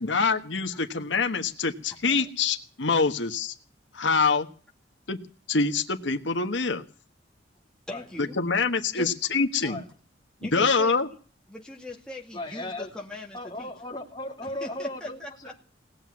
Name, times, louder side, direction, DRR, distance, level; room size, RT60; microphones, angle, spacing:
voice 1, 0.0-3.5 3.9-4.5 5.1-5.2 5.5-6.8 8.2-9.8 10.4-11.1, left 4 dB, 75° left, 6 dB, 1.3 m, -25 dB
voice 2, 7.9-8.4 8.9-9.1 9.6-9.7 10.4-11.0 11.5-13.7 14.6-15.5, left 2 dB, 5° left, -1 dB, 2.3 m, -40 dB
voice 3, 12.3-12.9 13.3-15.7, left 1 dB, 25° left, 0 dB, 3.3 m, -36 dB
19.0 x 7.7 x 9.6 m, 0.41 s
head